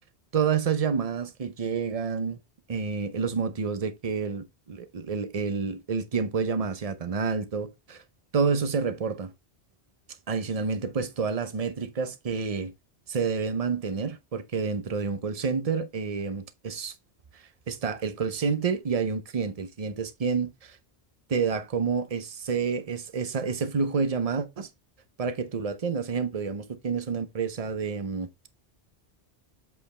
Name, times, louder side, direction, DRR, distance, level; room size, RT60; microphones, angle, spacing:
voice 1, 0.3-2.4 2.7-8.0 8.3-9.3 10.3-12.7 13.1-16.9 17.3-20.8 21.3-24.7 25.2-28.3, right 5 dB, 40° right, 0.8 m, -29 dB
7.6 x 4.7 x 3.2 m
omnidirectional pair, 1.1 m